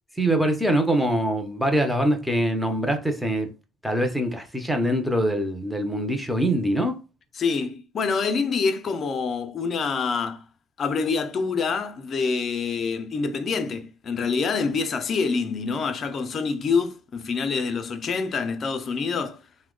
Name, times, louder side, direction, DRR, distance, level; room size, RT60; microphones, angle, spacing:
voice 1, 0.2-3.5 3.8-7.0, right 1 dB, 5° right, 0.6 m, -23 dB
voice 2, 7.4-10.4 10.8-19.4, left 5 dB, 40° left, 0.5 m, -26 dB
2.7 x 2.1 x 3.7 m
cardioid pair, 105°, 0 cm